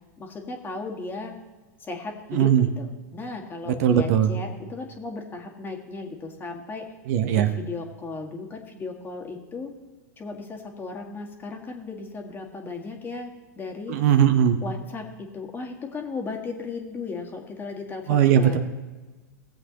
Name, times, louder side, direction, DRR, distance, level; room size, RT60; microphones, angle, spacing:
voice 1, 0.2-1.3 1.8-6.9 7.3-9.7 10.2-14.0 14.6-18.6, left 3 dB, 20° left, 2 dB, 1.7 m, -36 dB
voice 2, 2.3-2.7 3.7-4.3 7.1-7.5 13.9-14.6 18.1-18.6, right 9 dB, 55° right, 8 dB, 0.9 m, -19 dB
17.5 x 7.8 x 2.9 m, 1.3 s
hypercardioid pair, 105°, 10 cm